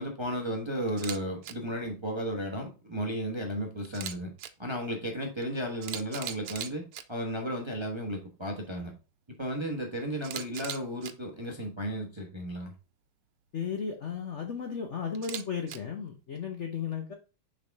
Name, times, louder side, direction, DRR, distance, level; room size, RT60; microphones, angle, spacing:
voice 1, 0.0-4.3 4.6-8.9 9.4-12.7, equal, 20° right, 0.9 m, -34 dB
Camera, 0.9-1.2 1.4-1.5 3.8-4.5 5.4-5.5 5.8-7.0 10.2-11.1 15.1-15.8, right 11 dB, 90° right, 1.5 m, -38 dB
voice 2, 13.5-17.1, left 6 dB, 55° left, 0.8 m, -35 dB
6.7 x 4.9 x 3.4 m
omnidirectional pair, 2.3 m